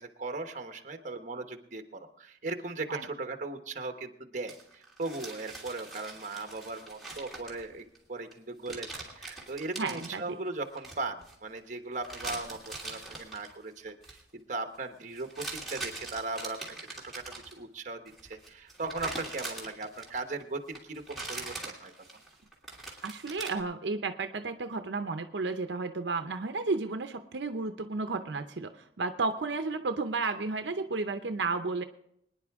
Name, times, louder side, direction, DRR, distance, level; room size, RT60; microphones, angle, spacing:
voice 1, 0.0-16.6 16.9-21.9, right 3 dB, 45° right, 6 dB, 1.1 m, -38 dB
sound 1, 4.5-8.0 8.3-8.4 8.6-10.1 10.7-11.3 12.0-13.5 13.9-14.2 15.2-17.6 18.1-20.4 20.7-23.6, right 2 dB, ahead, 2.8 m, -42 dB
voice 2, 9.8-10.4 23.0-31.8, right 3 dB, 80° right, 8 dB, 0.7 m, -32 dB
24.0 x 10.0 x 3.6 m, 0.75 s
head